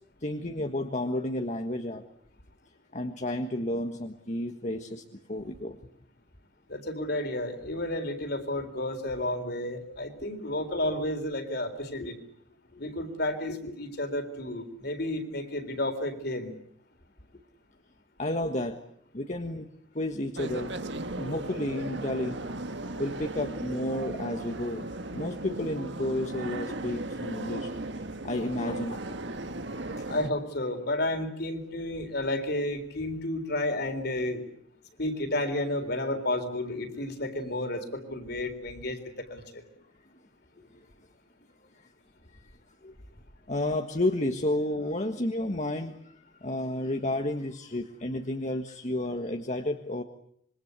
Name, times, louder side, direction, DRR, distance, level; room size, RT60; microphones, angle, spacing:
voice 1, 0.2-2.0 2.9-5.0 5.3-5.8 12.0-12.1 12.7-12.8 18.2-18.8 19.1-19.7 19.9-20.7 21.2-22.4 23.0-27.7 28.2-29.2 30.0-30.1 42.8-42.9 43.5-50.0, left 1 dB, 35° left, 5 dB, 1.5 m, -31 dB
voice 2, 6.7-12.1 12.8-16.5 30.1-34.4 35.0-39.6, left 1 dB, 55° left, 8 dB, 4.0 m, -31 dB
sound 1, 20.4-30.3, right 2 dB, 65° right, 1.8 m, -36 dB
26.5 x 23.5 x 8.2 m, 0.68 s
head